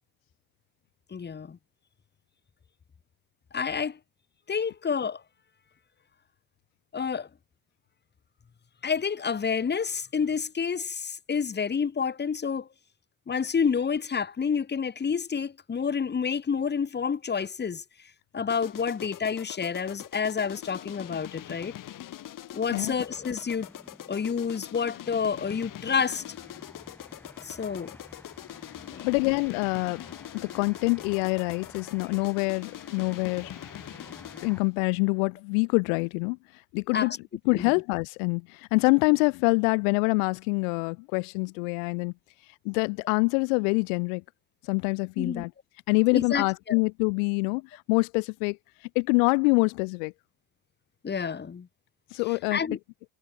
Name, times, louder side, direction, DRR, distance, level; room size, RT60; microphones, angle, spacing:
voice 1, 1.1-1.6 3.5-4.0 4.5-5.2 6.9-7.3 8.8-12.7 13.3-17.8 18.3-21.7 22.5-23.7 24.1-26.2 27.4-28.0 28.9-29.1 36.9-37.2 37.5-37.7 45.2-45.4 46.1-46.8 51.0-51.7 52.5-52.8, left 6 dB, 25° left, 2.1 m, -29 dB
sound 1, 18.5-34.7, left 13 dB, 55° left, 4.2 m, -43 dB
sound 2, 22.6-34.6, left 1 dB, 5° left, 4.7 m, -52 dB
voice 2, 29.0-30.0 30.3-33.5 34.4-36.4 36.7-37.1 37.4-42.1 42.6-44.2 44.7-45.5 45.9-48.6 48.9-50.1 52.1-52.6, left 37 dB, 85° left, 1.5 m, -25 dB
supercardioid pair, 90°, 38 cm